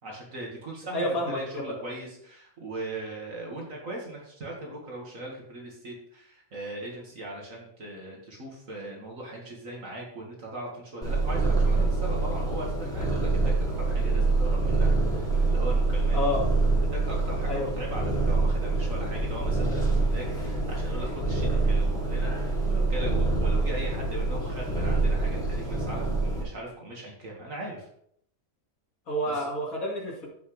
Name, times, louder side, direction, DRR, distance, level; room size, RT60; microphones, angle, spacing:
voice 1, 0.0-16.2 16.8-27.9 29.3-29.4, right 1 dB, 65° right, -2 dB, 2.4 m, -39 dB
voice 2, 0.9-1.7 16.1-16.4 17.5-17.7 29.1-30.3, left 1 dB, 75° left, -3 dB, 2.7 m, -29 dB
Purr, 11.0-26.4, right 3 dB, ahead, 2.9 m, -26 dB
14.0 x 6.1 x 3.4 m, 0.67 s
omnidirectional pair, 1.5 m